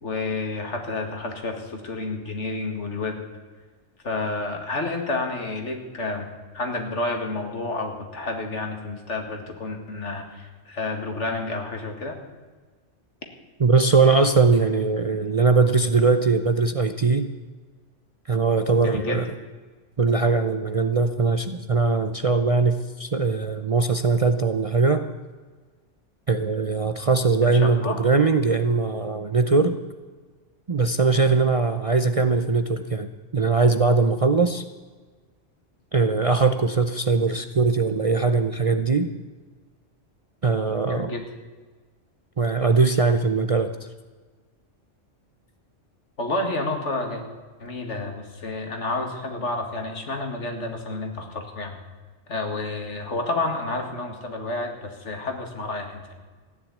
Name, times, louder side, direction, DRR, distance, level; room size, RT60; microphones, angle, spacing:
voice 1, 0.0-3.2 4.0-6.3 6.5-12.2 18.8-19.2 27.4-28.0 40.9-41.2 46.2-47.2 47.6-51.8 52.3-56.0, left 2 dB, 75° left, 4 dB, 2.4 m, -30 dB
voice 2, 13.6-17.3 18.3-19.3 20.0-25.1 26.3-29.8 30.7-33.1 33.3-34.6 35.9-39.1 40.4-41.1 42.4-43.7, right 4 dB, 40° right, 9 dB, 0.5 m, -21 dB
15.0 x 10.5 x 8.5 m, 1.4 s
omnidirectional pair, 1.2 m